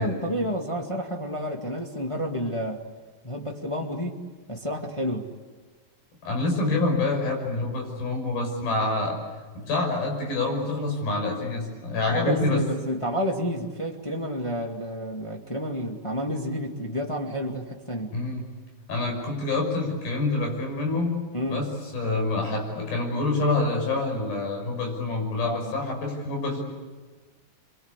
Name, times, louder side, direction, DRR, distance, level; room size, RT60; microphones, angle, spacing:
voice 1, 0.0-2.8 3.2-4.2 4.5-5.3 12.1-18.1 21.3-21.7 25.4-25.7, equal, 15° left, 0 dB, 1.4 m, -30 dB
voice 2, 6.2-9.2 9.6-12.6 18.1-18.5 18.9-21.2 21.5-21.7 21.9-26.6, left 2 dB, 85° left, 2 dB, 7.8 m, -26 dB
28.0 x 24.0 x 8.3 m, 1.4 s
omnidirectional pair, 4.1 m